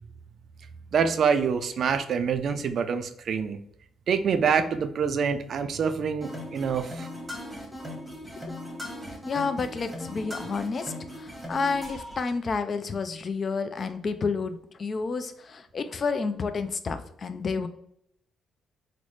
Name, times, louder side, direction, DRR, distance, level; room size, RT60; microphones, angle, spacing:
voice 1, 0.9-3.6 4.1-7.1, right 6 dB, 60° right, 9 dB, 0.3 m, -26 dB
sound 1, 6.2-12.2, left 1 dB, 5° right, 1.1 m, -38 dB
voice 2, 9.3-17.7, left 4 dB, 45° left, 10 dB, 0.3 m, -30 dB
3.9 x 2.1 x 3.0 m, 0.71 s
cardioid pair, 90°, 0 cm